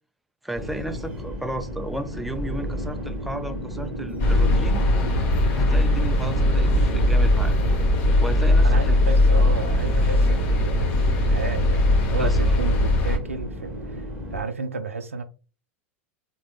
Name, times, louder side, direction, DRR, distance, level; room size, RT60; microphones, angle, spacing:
voice 1, 0.4-4.9 5.5-7.5 8.2-9.0 9.5-9.6 12.2-12.4, right 1 dB, ahead, 0.3 m, -34 dB
sound 1, 0.5-14.4, equal, 15° right, 1.1 m, -34 dB
sound 2, 4.2-13.2, left 1 dB, 45° left, 1.0 m, -20 dB
voice 2, 8.6-15.2, right 4 dB, 80° right, 0.4 m, -32 dB
3.5 x 2.1 x 3.1 m
figure-of-eight pair, 90°, 7 cm